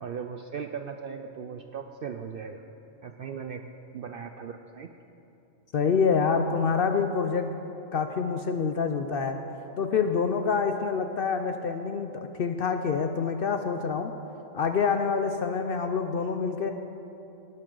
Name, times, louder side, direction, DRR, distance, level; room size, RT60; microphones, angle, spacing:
voice 1, 0.0-2.6 3.0-4.9, right 6 dB, 65° right, 6 dB, 0.5 m, -38 dB
voice 2, 5.7-7.5 7.9-9.4 9.8-14.1 14.5-16.7, left 5 dB, 60° left, 7 dB, 0.6 m, -26 dB
18.5 x 9.7 x 3.8 m, 3.0 s
omnidirectional pair, 1.4 m